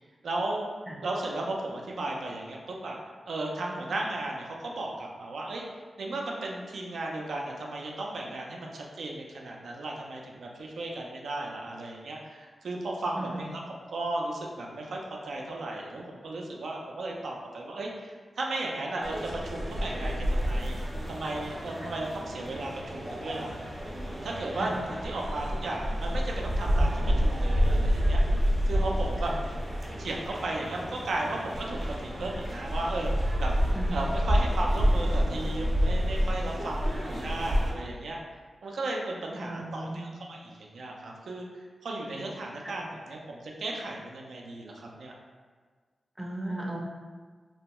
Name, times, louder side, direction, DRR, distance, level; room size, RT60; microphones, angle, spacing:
voice 1, 0.2-0.7 1.0-3.0 3.3-5.6 6.0-13.6 13.9-15.0 15.3-20.8 21.1-23.5 24.2-28.2 28.7-29.4 30.0-33.1 33.4-33.5 33.9-38.2 38.6-45.1, right 2 dB, 85° right, -1 dB, 0.4 m, -35 dB
voice 2, 13.1-13.5 24.6-24.7 29.3-29.4 33.7-34.0 39.4-40.1 42.6-42.7 46.2-46.8, right 1 dB, 5° right, -3 dB, 0.5 m, -36 dB
sound 1, 19.0-37.7, equal, 45° right, 0.6 m, -29 dB
2.7 x 2.1 x 2.9 m, 1.5 s
wide cardioid pair, 105°, 0 cm